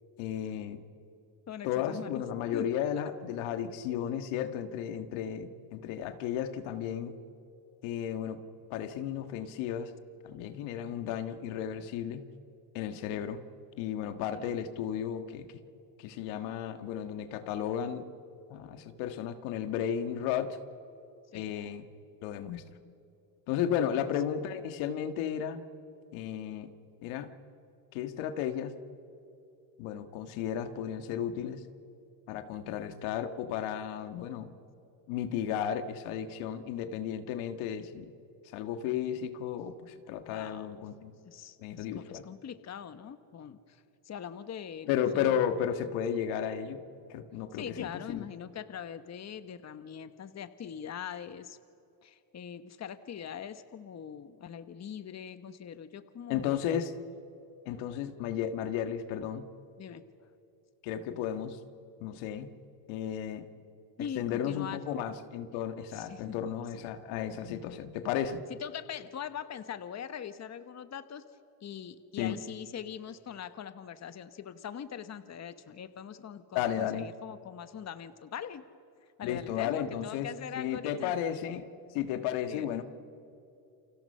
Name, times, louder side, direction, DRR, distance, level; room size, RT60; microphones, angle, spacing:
voice 1, 0.2-0.8 1.6-7.1 7.8-8.4 8.7-9.9 10.2-12.2 12.7-13.4 13.8-15.5 16.0-18.1 18.5-20.6 21.3-21.8 22.2-22.6 23.5-25.6 26.1-26.7 27.0-27.3 27.9-28.8 29.8-31.6 32.3-34.5 35.1-38.1 38.5-41.1 41.6-42.2 44.9-46.8 47.1-48.2 56.3-56.9 57.7-59.4 60.8-61.6 62.0-62.5 62.9-63.5 64.2-68.4 72.2-72.4 76.6-77.1 79.2-80.3 80.6-81.7 81.9-82.8, left 9 dB, 80° left, 9 dB, 1.8 m, -33 dB
voice 2, 1.5-2.2 2.5-2.7 14.3-14.4 21.3-21.5 23.7-24.0 40.3-40.7 41.2-45.4 47.5-51.6 52.0-56.6 59.8-60.3 64.0-64.8 65.9-66.4 66.7-66.8 68.5-71.2 71.6-78.6 79.0-81.2 82.4-82.7, left 8 dB, 35° left, 12 dB, 1.3 m, -42 dB
29.5 x 24.5 x 5.6 m, 2.8 s
supercardioid pair, 95°, 48 cm